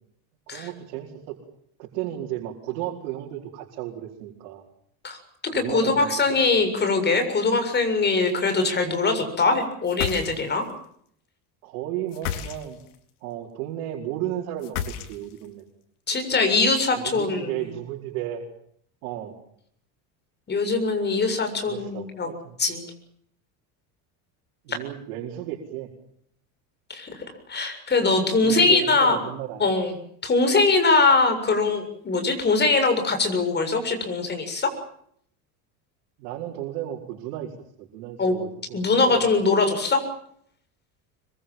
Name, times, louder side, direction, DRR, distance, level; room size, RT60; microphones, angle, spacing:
voice 1, 0.5-1.4 1.8-4.6 5.5-6.4 10.3-10.5 11.6-12.8 13.2-14.8 15.1-15.6 17.0-18.5 19.0-19.4 21.7-22.5 24.6-25.9 28.4-29.7 36.2-39.2, right 12 dB, 85° right, -2 dB, 4.9 m, -34 dB
voice 2, 5.5-10.6 16.1-17.5 20.5-22.3 22.6-22.9 24.7-24.8 26.9-27.1 27.5-29.2 29.6-29.9 30.2-34.7 38.2-38.4 38.7-40.0, left 3 dB, 25° left, 7 dB, 7.2 m, -22 dB
sound 1, 9.8-10.7 12.1-13.0 14.6-15.5, left 9 dB, 90° left, 4.0 m, -32 dB
25.5 x 23.0 x 7.4 m, 0.67 s
cardioid pair, 135°, 44 cm